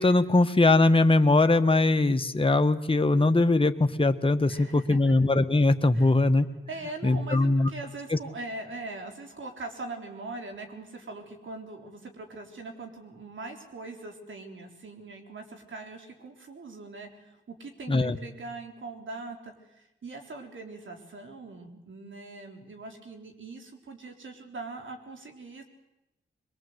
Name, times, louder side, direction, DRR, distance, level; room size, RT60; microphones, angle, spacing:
voice 1, 0.0-6.4 7.0-7.7 8.1-8.2 17.9-18.2, left 2 dB, 25° left, 8 dB, 1.4 m, -21 dB
voice 2, 4.4-5.0 5.9-6.1 6.7-25.6, right 3 dB, 65° right, 3 dB, 3.9 m, -41 dB
22.5 x 21.5 x 8.1 m, 0.95 s
cardioid pair, 50°, 21 cm